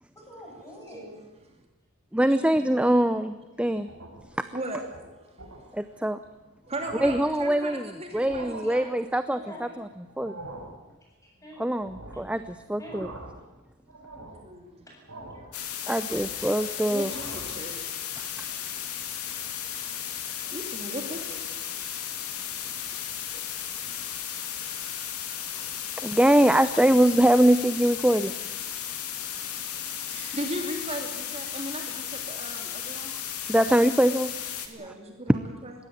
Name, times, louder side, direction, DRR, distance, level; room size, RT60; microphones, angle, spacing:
voice 1, 0.1-1.3 9.5-9.8 11.2-11.6 12.8-13.0 14.9-15.0, equal, 15° left, -1 dB, 7.8 m, -44 dB
voice 2, 2.1-3.9 5.7-6.2 7.0-9.9 10.2-10.3 11.6-13.1 15.9-17.1 18.1-18.5 26.0-28.3 33.5-34.3 34.9-35.0, right 1 dB, 5° right, 11 dB, 0.6 m, -23 dB
sound 1, 3.8-4.3 4.8-5.0 5.4-5.6 6.2-6.3 6.6-7.3 8.1-8.7 10.1-10.8 11.8-12.4 12.7-13.5 13.9-14.5 15.1-15.5 15.9-16.6 16.9-17.6, right 2 dB, 70° right, 6.4 m, -43 dB
voice 3, 4.3-5.7 6.7-8.9 14.3-14.8 15.4-16.2 16.5-18.0 18.9-19.2 19.8-19.9 20.4-21.8 22.7-23.0 23.3-23.6 24.1-25.9 30.0-33.1 34.7-35.7, right 1 dB, 25° right, 3 dB, 2.8 m, -39 dB
sound 2, 15.5-34.7, left 9 dB, 85° left, 2.7 m, -35 dB
20.5 x 16.5 x 9.4 m, 1.2 s
head